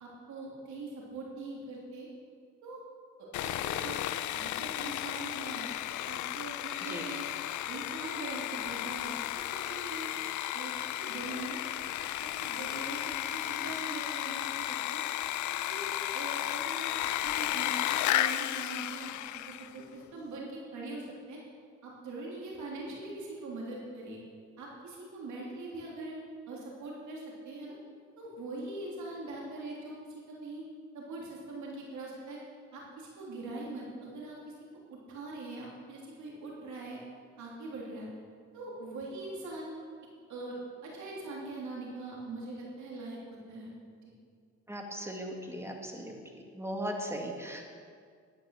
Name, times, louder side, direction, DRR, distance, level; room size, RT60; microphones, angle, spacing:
voice 1, 0.0-2.1 2.6-2.8 3.2-4.0 4.3-5.7 6.0-7.3 7.7-10.1 10.5-11.6 12.4-13.0 13.3-15.0 15.5-15.8 16.1-16.9 17.2-21.4 21.8-24.2 24.6-26.1 26.5-27.8 28.2-30.6 30.9-32.4 32.7-34.4 34.9-37.0 37.4-38.1 38.5-39.7 40.3-40.6 40.8-43.2 43.5-43.7, right 2 dB, 80° right, -3 dB, 3.1 m, -42 dB
Sawing, 3.3-19.8, left 13 dB, 80° left, 0.5 m, -34 dB
voice 2, 44.7-47.6, equal, 10° right, 1 dB, 2.2 m, -38 dB
12.0 x 9.7 x 6.4 m, 2.1 s
cardioid pair, 80°, 29 cm